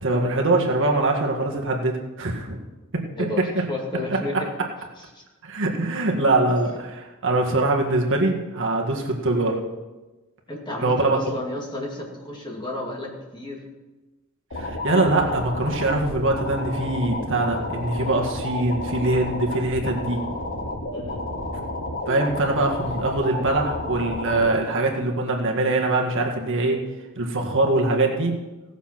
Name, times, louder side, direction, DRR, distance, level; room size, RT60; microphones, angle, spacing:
voice 1, 0.0-2.6 2.9-3.0 5.4-9.5 10.8-11.2 14.5-20.2 22.1-26.8 27.1-28.3, right 2 dB, 60° right, 1 dB, 1.8 m, -23 dB
voice 2, 3.2-4.5 5.1-5.2 6.6-6.7 10.5-13.6 18.0-18.1 20.9-21.2, left 1 dB, 20° left, -1 dB, 2.5 m, -32 dB
sound 1, 14.5-24.5, left 1 dB, 60° left, 2.9 m, -31 dB
17.0 x 7.1 x 5.9 m, 1.1 s
head